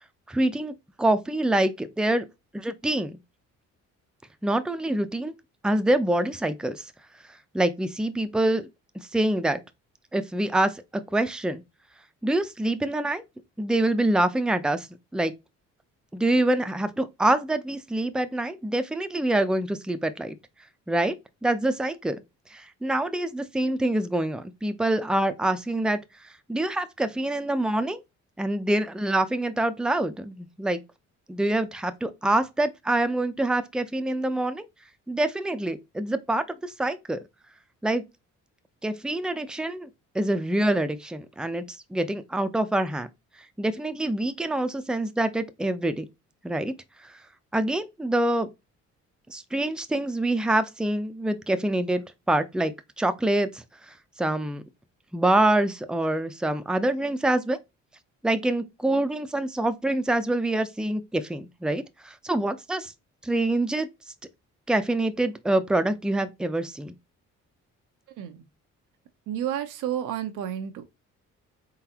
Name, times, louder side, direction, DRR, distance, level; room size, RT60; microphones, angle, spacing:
voice 1, 0.3-2.2 2.5-3.2 4.4-5.3 5.6-6.8 7.5-8.7 9.1-9.6 10.1-11.6 12.2-13.2 13.6-14.9 15.1-15.3 16.1-20.4 20.9-21.1 21.4-22.2 22.5-26.0 26.2-28.0 28.4-30.8 31.3-34.7 35.1-37.2 37.8-38.0 38.8-39.9 40.1-41.6 41.9-43.1 43.6-46.0 46.4-46.7 47.0-47.1 47.5-48.5 49.3-54.6 55.1-57.6 58.2-62.9 63.2-63.9 64.7-66.9, right 1 dB, 5° right, 0.6 m, -26 dB
voice 2, 69.3-70.8, right 10 dB, 90° right, 0.8 m, -31 dB
3.9 x 3.9 x 2.8 m
cardioid pair, 90°, 30 cm